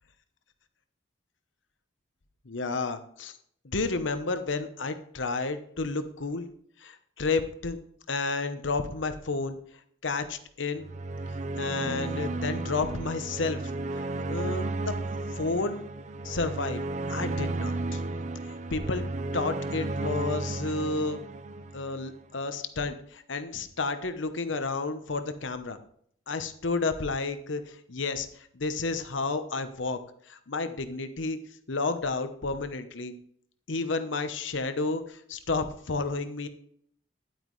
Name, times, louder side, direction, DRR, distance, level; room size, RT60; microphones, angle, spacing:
voice 1, 2.4-3.4 3.6-6.4 6.8-7.8 8.1-9.6 10.0-10.9 11.6-14.9 15.4-15.8 16.2-16.8 17.1-18.0 18.4-19.0 19.3-21.2 21.7-25.8 26.3-30.0 30.3-31.4 31.7-33.2 33.7-36.5, left 3 dB, 80° left, 9 dB, 0.9 m, -31 dB
sound 1, 10.8-22.1, right 2 dB, 35° right, 0.4 m, -33 dB
10.5 x 9.2 x 3.2 m, 0.63 s
head